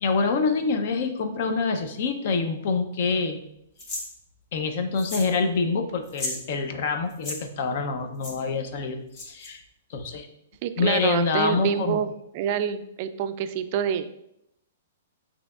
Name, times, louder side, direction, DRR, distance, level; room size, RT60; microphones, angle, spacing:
voice 1, 0.0-3.4 4.5-9.6 9.9-10.3 10.8-12.0, left 4 dB, 50° left, 6 dB, 0.6 m, -26 dB
sound 1, 3.8-4.1 5.0-5.4 5.6-5.7 6.0-6.4 7.1-7.4 8.2-8.3 9.1-9.5, left 2 dB, 30° left, 1.6 m, -34 dB
voice 2, 10.6-12.1 12.3-14.3, right 9 dB, 40° right, 10 dB, 0.3 m, -27 dB
7.7 x 2.8 x 2.3 m, 0.79 s
hypercardioid pair, 155°, 0 cm